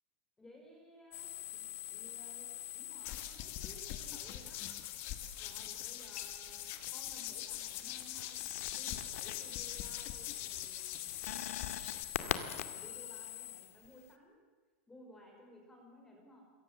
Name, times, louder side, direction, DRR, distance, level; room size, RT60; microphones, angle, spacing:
voice 1, 0.4-4.8 5.4-8.4 8.7-11.1 12.2-14.4 14.9-16.4, left 1 dB, 5° left, 1 dB, 5.2 m, -58 dB
sound 1, 1.1-3.6 6.0-7.1 7.5-14.1, left 11 dB, 90° left, 2.2 m, -43 dB
sound 2, 3.0-12.0, left 12 dB, 35° left, 1.9 m, -43 dB
27.0 x 23.0 x 7.5 m, 1.3 s
supercardioid pair, 175°, 7 cm